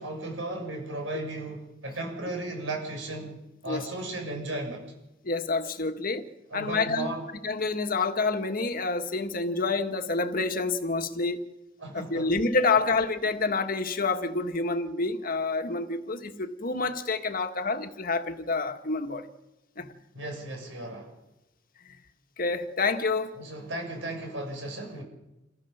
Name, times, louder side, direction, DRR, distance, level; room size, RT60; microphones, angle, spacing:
voice 1, 0.0-4.8 6.5-7.2 11.8-12.3 20.1-21.1 23.4-25.0, right 2 dB, 80° right, 7.1 m, -35 dB
voice 2, 5.2-6.3 6.5-7.1 7.4-11.4 11.9-19.3 19.8-19.9 22.4-23.3, left 3 dB, 50° left, 1.6 m, -28 dB
28.0 x 15.5 x 7.3 m
head